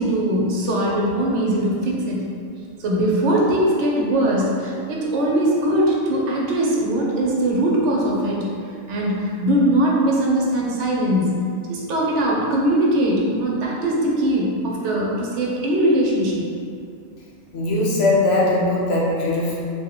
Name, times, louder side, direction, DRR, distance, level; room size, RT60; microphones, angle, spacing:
voice 1, 0.0-2.3 2.8-8.5 8.9-11.4 11.7-16.4, right 1 dB, 75° right, -3 dB, 0.9 m, -21 dB
voice 2, 17.5-19.5, left 2 dB, 65° left, -5 dB, 0.9 m, -20 dB
2.8 x 2.1 x 3.7 m, 2.4 s
omnidirectional pair, 1.2 m